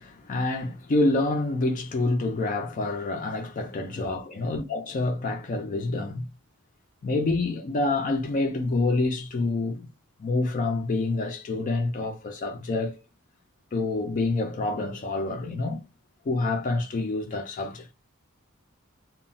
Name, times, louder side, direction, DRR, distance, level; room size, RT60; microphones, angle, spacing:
voice 1, 0.0-6.3 7.0-9.9 10.2-13.0 13.7-15.8 16.3-17.9, left 2 dB, 40° left, 0.4 m, -27 dB
2.1 x 2.0 x 3.8 m
head